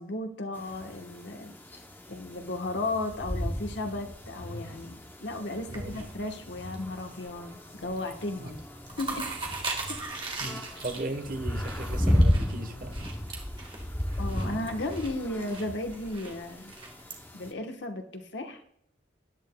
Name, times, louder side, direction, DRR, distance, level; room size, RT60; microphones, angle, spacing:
voice 1, 0.0-1.5 2.1-8.6 9.0-9.3 9.9-10.0 14.2-16.7 17.3-18.6, left 2 dB, 75° left, 1.1 m, -35 dB
sound 1, 0.5-17.5, equal, 10° left, 0.6 m, -34 dB
sound 2, 4.1-5.3, left 1 dB, 50° left, 1.3 m, -45 dB
sound 3, 5.6-6.8 7.1-7.5 7.8-8.2 8.5-17.1, right 3 dB, 25° right, 1.4 m, -39 dB
voice 2, 5.7-6.0 8.4-8.5 10.4-13.1, right 1 dB, 50° right, 1.0 m, -37 dB
16.0 x 10.5 x 2.2 m
head